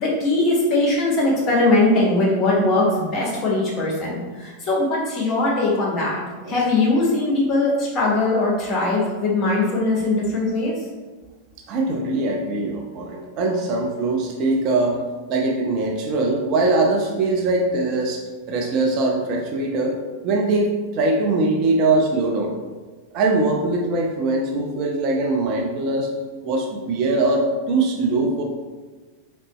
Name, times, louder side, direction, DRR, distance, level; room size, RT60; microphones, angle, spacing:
voice 1, 0.0-10.7, left 2 dB, 30° left, -4 dB, 1.4 m, -20 dB
voice 2, 11.7-15.0 15.3-18.2 18.5-20.0 20.2-22.5 23.1-26.1 26.4-28.4, right 2 dB, 40° right, 0 dB, 0.5 m, -22 dB
3.9 x 3.2 x 3.1 m, 1.3 s
figure-of-eight pair, 90°, 0 cm